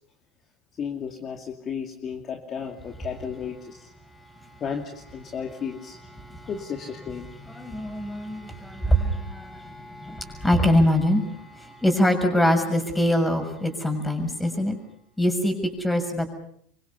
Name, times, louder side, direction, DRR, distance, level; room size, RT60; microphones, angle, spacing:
voice 1, 0.8-3.9 4.6-6.0 6.5-7.3, left 7 dB, 35° left, 3 dB, 2.7 m, -33 dB
voice 2, 4.2-4.6 5.2-5.6 5.8-6.5 7.0-14.8 15.2-16.3, equal, 10° left, 6 dB, 6.6 m, -24 dB
27.5 x 24.0 x 7.0 m, 0.66 s
hypercardioid pair, 85°, 0 cm